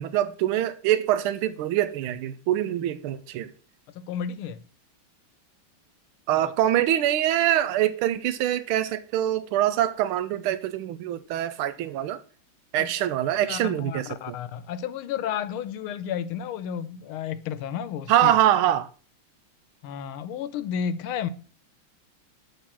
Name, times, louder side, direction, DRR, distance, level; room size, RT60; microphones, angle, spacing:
voice 1, 0.0-3.5 6.3-12.2 12.7-14.3 18.1-18.9, right 12 dB, 90° right, 1.5 m, -24 dB
voice 2, 3.9-4.6 6.3-6.4 12.8-12.9 13.4-18.3 19.8-21.3, left 8 dB, 80° left, 1.6 m, -32 dB
11.5 x 3.9 x 7.3 m
omnidirectional pair, 2.3 m